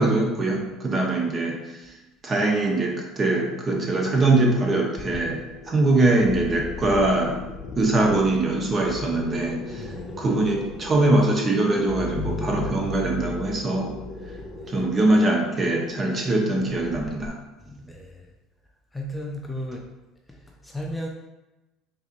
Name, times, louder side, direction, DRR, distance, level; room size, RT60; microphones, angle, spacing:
voice 1, 0.0-1.9 2.2-7.5 7.8-14.0 14.7-17.4, right 2 dB, 30° right, 0 dB, 0.8 m, -22 dB
sound 1, 5.0-17.3, left 3 dB, 40° left, 0.8 m, -36 dB
voice 2, 9.8-10.2 14.5-14.8 17.6-18.3 18.9-19.9 20.3-21.1, equal, 10° left, 0 dB, 0.5 m, -35 dB
4.0 x 2.9 x 2.5 m, 1.1 s
hypercardioid pair, 80°, 0 cm